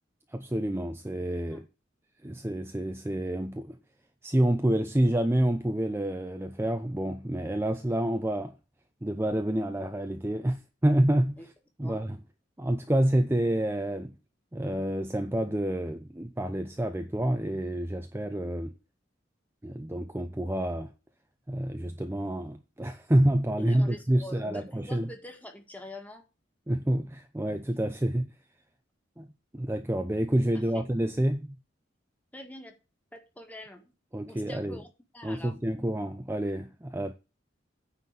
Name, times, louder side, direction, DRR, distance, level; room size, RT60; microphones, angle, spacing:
voice 1, 0.3-1.6 2.2-3.8 4.2-8.5 9.0-11.4 11.8-12.2 12.6-14.1 14.5-18.7 19.6-20.9 21.5-25.1 26.7-28.3 29.2-29.3 29.5-31.5 34.1-34.8 35.2-37.1, right 1 dB, 15° right, 0.6 m, -28 dB
voice 2, 23.6-26.2 30.7-30.9 32.3-32.7 33.1-33.9 34.3-34.9 35.1-35.5, left 1 dB, 10° left, 1.8 m, -45 dB
9.4 x 4.3 x 7.5 m
head